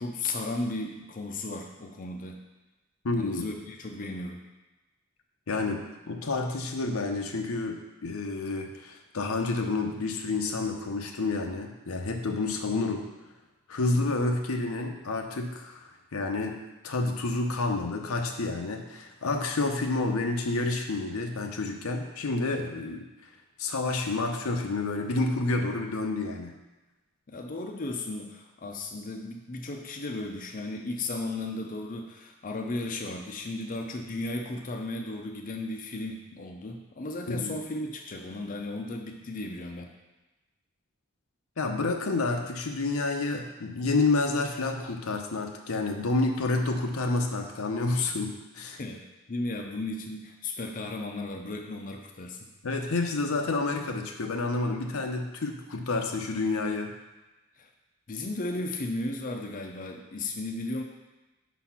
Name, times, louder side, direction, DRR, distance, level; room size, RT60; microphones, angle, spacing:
voice 1, 0.0-2.4 3.2-4.4 27.3-39.9 48.8-52.5 57.6-57.7 58.1-60.8, left 2 dB, 40° left, 2 dB, 0.6 m, -35 dB
voice 2, 3.0-3.5 5.5-13.0 13.7-15.8 16.1-16.6 16.8-23.1 23.6-26.6 37.3-37.5 41.6-48.3 48.5-48.8 52.6-56.9, left 3 dB, 85° left, 3 dB, 0.7 m, -29 dB
5.5 x 4.1 x 5.7 m, 1.1 s
head